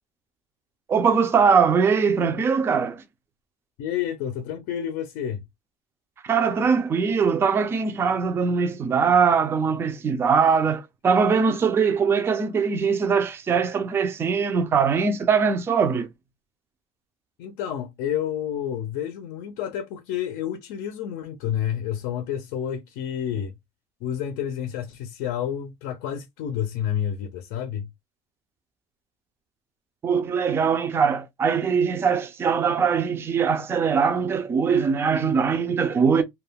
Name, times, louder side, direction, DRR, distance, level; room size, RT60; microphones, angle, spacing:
voice 1, 0.9-3.0 6.2-16.1 30.0-36.2, right 6 dB, 15° right, 0.3 m, -21 dB
voice 2, 3.8-5.4 17.4-23.5 24.0-27.9, left 10 dB, 80° left, 0.5 m, -29 dB
2.3 x 2.2 x 3.3 m
cardioid pair, 170°, 14 cm